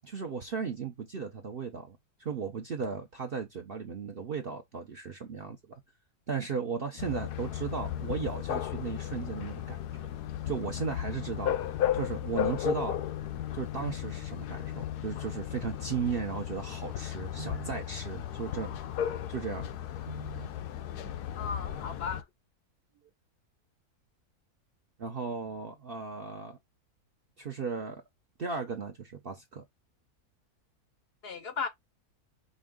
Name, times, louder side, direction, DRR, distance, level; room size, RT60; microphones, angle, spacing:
voice 1, 0.0-5.8 6.3-10.1 10.4-13.0 13.5-19.7 20.1-20.5 21.0-21.2 25.0-26.6 27.4-28.0 28.4-29.6, right 5 dB, 50° right, 0.7 m, -36 dB
sound 1, 7.0-22.2, left 11 dB, 90° left, 1.2 m, -35 dB
voice 2, 21.4-22.2 31.2-31.7, left 5 dB, 55° left, 0.7 m, -35 dB
5.3 x 2.6 x 3.6 m
omnidirectional pair, 1.6 m